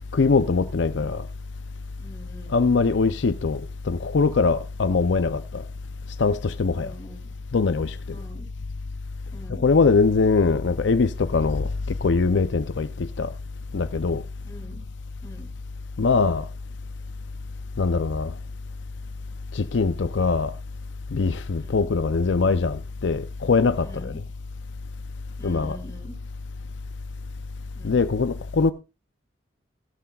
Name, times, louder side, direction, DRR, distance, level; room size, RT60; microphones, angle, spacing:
voice 1, 0.1-1.3 2.5-5.6 6.2-6.9 7.5-8.0 9.6-11.7 12.0-13.3 13.7-14.2 16.0-16.5 17.8-18.3 19.5-20.5 21.1-24.2 25.4-25.8 27.8-28.7, left 4 dB, 80° left, 0.5 m, -22 dB
voice 2, 2.0-2.8 4.9-5.2 6.7-7.2 8.1-8.5 9.3-9.6 14.4-14.8 15.2-15.5 21.5-21.9 23.8-24.2 25.4-26.1 27.7-28.1, right 1 dB, 15° left, 3.3 m, -44 dB
16.0 x 13.5 x 2.3 m
head